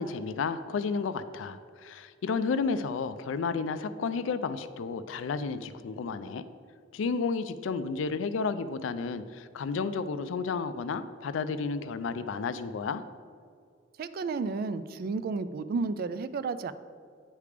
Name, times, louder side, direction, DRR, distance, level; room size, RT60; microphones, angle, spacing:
voice 1, 0.0-6.4 6.9-13.0, left 5 dB, 80° left, 12 dB, 0.4 m, -32 dB
voice 2, 14.0-16.7, right 4 dB, 50° right, 13 dB, 0.3 m, -32 dB
9.5 x 3.3 x 4.9 m, 2.2 s
head